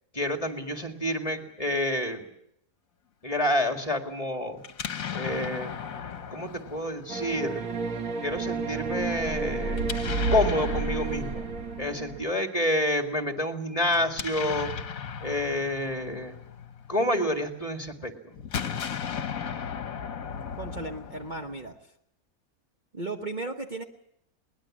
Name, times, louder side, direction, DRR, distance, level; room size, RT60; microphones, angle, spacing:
voice 1, 0.1-2.2 3.2-4.6 5.1-5.8 6.1-7.6 8.2-9.9 10.3-11.5 11.8-14.7 15.2-16.4 16.9-18.3, left 1 dB, 25° left, 4 dB, 2.1 m, -28 dB
Explosion, 4.6-7.7 9.7-12.0 13.9-17.3 18.3-21.7, left 7 dB, 65° left, 1.5 m, -37 dB
sound 1, 7.1-12.2, right 4 dB, 65° right, 1.8 m, -30 dB
voice 2, 20.6-21.8 22.9-23.8, right 2 dB, 35° right, 3 dB, 1.2 m, -35 dB
21.5 x 19.5 x 7.5 m, 0.75 s
omnidirectional pair, 1.6 m